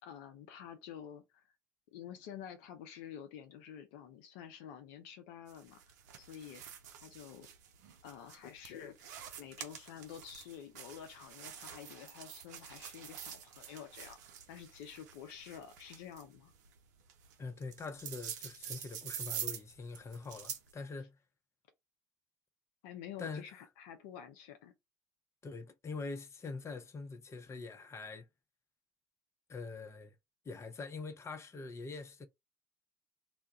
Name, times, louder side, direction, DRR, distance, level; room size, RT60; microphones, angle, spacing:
voice 1, 0.0-1.4 1.9-5.8 6.2-6.6 7.0-7.5 8.0-9.1 9.4-14.2 14.5-16.5 22.8-24.7, left 9 dB, 70° left, 0.5 m, -49 dB
sound 1, 5.5-20.7, right 9 dB, 75° right, 0.5 m, -47 dB
voice 2, 17.4-21.2 23.2-23.4 25.4-28.3 29.5-30.1 30.4-32.3, left 4 dB, 30° left, 0.7 m, -44 dB
2.3 x 2.1 x 3.9 m
hypercardioid pair, 65°, 9 cm